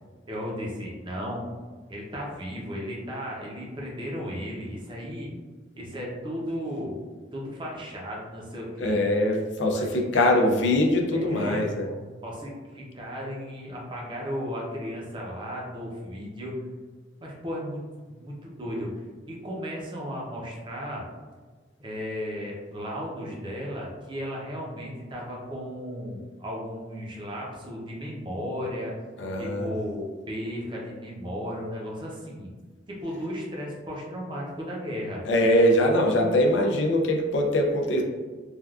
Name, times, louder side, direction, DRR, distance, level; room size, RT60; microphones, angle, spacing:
voice 1, 0.3-1.4 1.9-5.3 5.8-6.9 7.3-8.9 9.7-10.4 11.1-16.6 17.2-17.8 18.1-18.9 19.3-21.0 21.8-28.9 29.4-32.5 32.9-35.2, equal, 25° right, -3 dB, 0.6 m, -35 dB
voice 2, 8.8-11.9 29.2-29.7 35.3-38.0, left 1 dB, 85° left, 1 dB, 0.5 m, -22 dB
3.3 x 2.4 x 2.4 m, 1.4 s
head